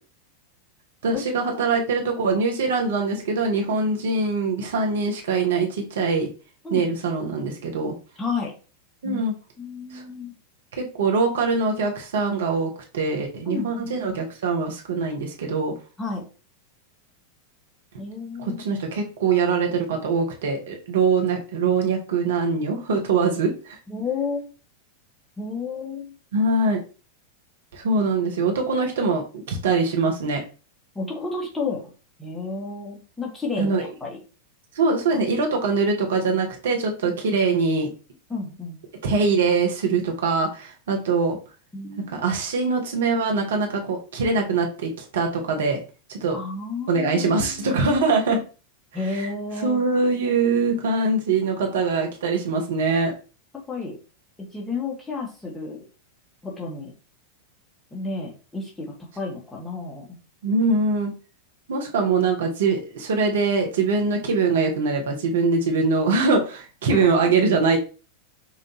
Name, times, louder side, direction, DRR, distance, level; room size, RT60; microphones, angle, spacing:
voice 1, 1.0-6.3 6.7-7.9 9.0-9.3 9.9-10.0 10.8-15.7 18.4-23.8 26.3-26.8 27.7-29.2 29.5-30.4 33.6-33.8 34.7-37.9 39.0-41.4 42.0-45.8 46.1-46.4 46.9-48.4 49.1-49.3 49.6-53.1 60.4-61.1 61.7-67.8, right 4 dB, 60° right, 2 dB, 0.9 m, -23 dB
voice 2, 8.2-8.5 9.0-9.2 9.6-10.4 13.5-13.9 16.0-16.2 18.0-18.6 23.9-24.5 25.4-26.1 30.9-31.8 32.2-34.2 37.0-37.4 38.3-38.8 41.7-42.1 46.3-47.9 48.9-49.8 53.7-54.0 54.5-55.8 56.4-56.9 57.9-60.2 66.9-67.3, left 4 dB, 10° left, -2 dB, 1.4 m, -31 dB
5.6 x 2.5 x 2.8 m, 0.34 s
figure-of-eight pair, 90°, 0 cm